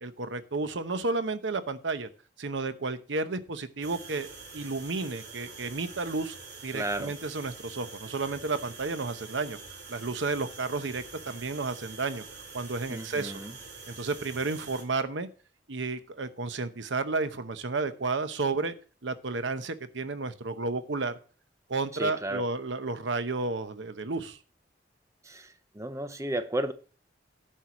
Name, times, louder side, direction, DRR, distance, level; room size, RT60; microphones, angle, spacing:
voice 1, 0.0-2.1 2.4-4.3 4.5-6.4 6.6-9.6 9.9-12.2 12.5-13.4 13.9-15.3 15.7-18.7 19.0-21.1 21.7-24.4, right 3 dB, 90° right, 0.9 m, -32 dB
sound 1, 3.8-14.8, right 4 dB, 65° right, 3.5 m, -46 dB
voice 2, 6.7-7.1 12.9-13.6 21.9-22.4 25.2-26.7, right 1 dB, 15° right, 0.7 m, -33 dB
10.0 x 4.7 x 7.0 m
head